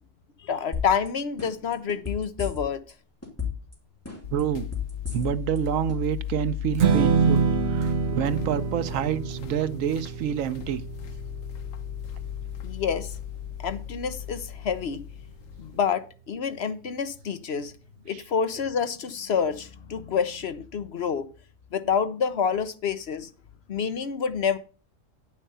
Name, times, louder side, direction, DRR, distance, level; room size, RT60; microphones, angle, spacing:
voice 1, 0.4-2.8 12.6-13.1 13.6-15.0 15.6-17.7 18.1-21.3 21.7-23.3 23.7-24.6, left 6 dB, 55° left, 1.0 m, -28 dB
sound 1, 0.7-1.1 1.4-2.9 3.2-3.7 4.1-5.6 5.9-6.0, left 6 dB, 10° left, 2.7 m, -32 dB
sound 2, 4.2-15.8, left 11 dB, 85° left, 1.2 m, -36 dB
voice 2, 4.3-4.7 5.1-10.8 18.1-18.2, right 9 dB, 85° right, 1.1 m, -28 dB
Strum, 6.8-13.1, right 6 dB, 60° right, 1.1 m, -27 dB
10.0 x 6.4 x 5.4 m
omnidirectional pair, 1.3 m